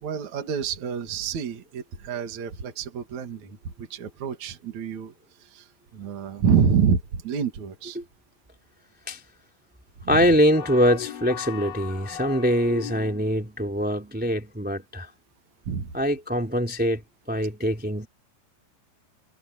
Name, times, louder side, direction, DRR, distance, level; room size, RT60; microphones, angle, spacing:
voice 1, 0.0-5.1 5.5-5.6 5.9-7.0 7.2-8.0 10.0-10.3 15.7-15.9, right 7 dB, 60° right, 3.3 m, -27 dB
voice 2, 10.1-15.1 15.9-17.0 17.3-18.1, equal, 5° right, 3.2 m, -23 dB
sound 1, 10.5-13.4, left 9 dB, 75° left, 5.1 m, -37 dB
omnidirectional pair, 3.9 m